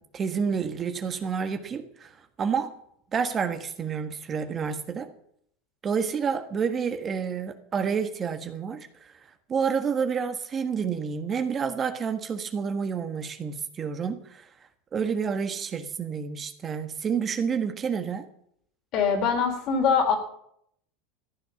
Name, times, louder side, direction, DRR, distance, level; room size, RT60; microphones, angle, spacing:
voice 1, 0.0-2.1 2.4-2.7 3.1-5.1 5.8-9.1 9.5-14.5 14.9-18.2, right 6 dB, 30° right, 7 dB, 1.5 m, -29 dB
voice 2, 18.9-20.2, left 6 dB, 50° left, 4 dB, 4.0 m, -23 dB
14.5 x 9.2 x 7.1 m, 0.69 s
supercardioid pair, 115°, 0 cm